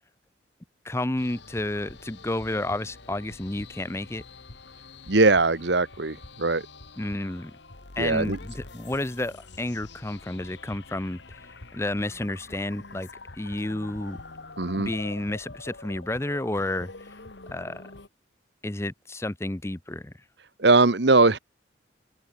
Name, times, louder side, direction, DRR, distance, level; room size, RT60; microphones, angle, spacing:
voice 1, 0.8-4.2 7.0-7.5 8.0-13.1 13.3-14.2 14.8-17.1 17.5-17.8 18.6-20.1, left 1 dB, 15° left, 0.6 m, -31 dB
sound 1, 1.2-18.1, left 3 dB, 65° left, 1.8 m, -45 dB
voice 2, 5.1-6.7 8.0-8.4 14.6-14.9 20.6-21.4, right 3 dB, 60° right, 1.2 m, -20 dB
head